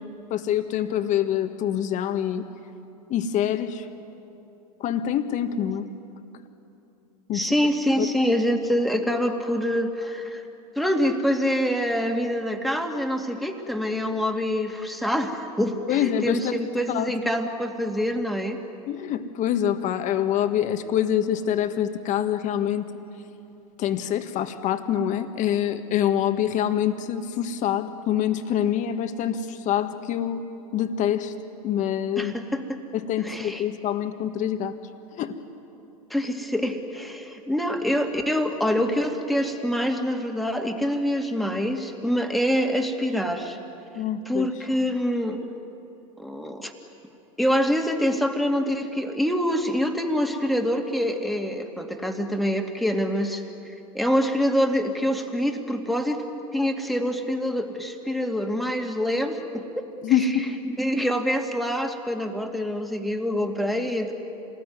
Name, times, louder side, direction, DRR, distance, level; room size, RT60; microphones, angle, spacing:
voice 1, 0.3-2.4 3.1-3.9 4.8-5.9 7.3-7.5 8.0-8.1 15.9-16.6 16.9-17.1 18.9-22.9 23.8-30.4 30.7-31.4 31.6-32.3 32.9-34.7 35.1-35.4 44.0-44.5 60.0-60.5, left 10 dB, 40° left, 8 dB, 1.8 m, -25 dB
voice 2, 7.3-10.4 10.8-18.6 32.2-32.8 33.2-33.6 36.1-43.6 44.3-45.4 46.2-46.7 47.4-53.4 53.9-56.3 56.5-59.8 60.2-60.3 60.8-64.1, equal, ahead, 3 dB, 2.4 m, -25 dB
27.0 x 20.0 x 9.5 m, 2.8 s
hypercardioid pair, 105°, 19 cm